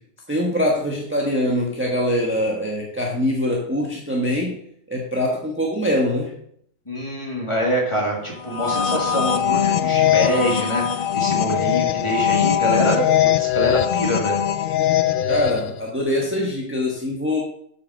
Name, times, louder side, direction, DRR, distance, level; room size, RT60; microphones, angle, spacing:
voice 1, 0.3-4.6 4.9-6.3 15.3-17.4, left 1 dB, 10° right, -2 dB, 1.3 m, -23 dB
voice 2, 6.9-14.4, equal, 20° left, -2 dB, 2.6 m, -25 dB
sound 1, 8.4-15.8, left 10 dB, 60° left, 0.6 m, -21 dB
7.7 x 6.0 x 6.4 m, 0.67 s
omnidirectional pair, 1.3 m